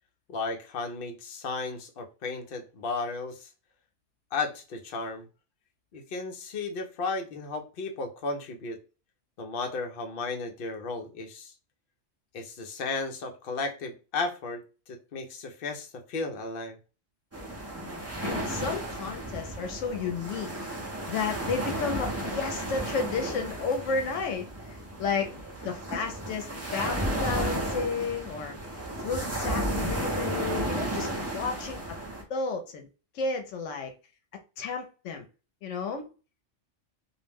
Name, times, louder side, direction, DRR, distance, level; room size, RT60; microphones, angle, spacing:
voice 1, 0.3-3.5 4.3-5.3 5.9-8.8 9.4-11.5 12.3-16.8, left 3 dB, 60° left, 0.7 m, -34 dB
sound 1, 17.3-32.2, right 1 dB, 20° right, 0.4 m, -33 dB
voice 2, 18.2-20.5 21.1-25.3 25.6-28.6 29.0-32.0 32.3-32.9 33.1-33.9 34.6-35.3 35.6-36.1, left 4 dB, 85° left, 0.9 m, -32 dB
2.4 x 2.1 x 3.3 m
omnidirectional pair, 1.2 m